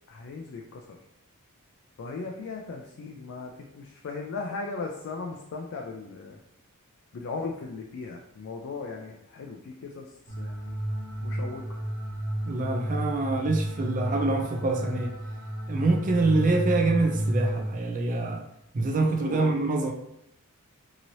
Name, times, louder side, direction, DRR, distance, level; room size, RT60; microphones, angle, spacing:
voice 1, 0.1-1.0 2.0-6.4 7.1-10.8 11.2-11.8 19.2-19.6, left 4 dB, 60° left, 1 dB, 0.4 m, -37 dB
sound 1, 10.3-17.7, right 1 dB, 75° right, 1.0 m, -31 dB
voice 2, 12.5-15.1 15.7-18.4 18.7-19.9, right 2 dB, 40° right, 3 dB, 0.4 m, -25 dB
3.0 x 2.8 x 2.6 m, 0.79 s
head